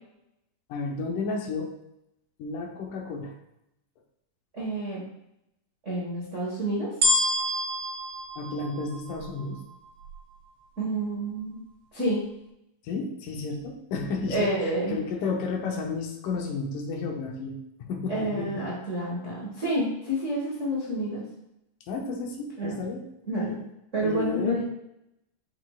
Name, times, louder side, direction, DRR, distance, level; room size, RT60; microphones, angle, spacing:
voice 1, 0.7-1.7 2.4-3.3 8.4-9.6 12.8-18.6 21.9-23.0 23.4-23.6 24.0-24.6, left 4 dB, 75° left, 2 dB, 2.4 m, -32 dB
voice 2, 4.5-5.0 5.8-6.9 10.8-11.6 11.9-12.2 14.3-15.0 18.1-21.2 22.6-22.8 23.3-23.6 23.9-24.6, right 1 dB, 50° right, -6 dB, 0.8 m, -29 dB
sound 1, 7.0-9.4 10.0-10.1, left 1 dB, 75° right, 1.5 m, -27 dB
6.5 x 6.1 x 2.4 m, 0.84 s
omnidirectional pair, 3.8 m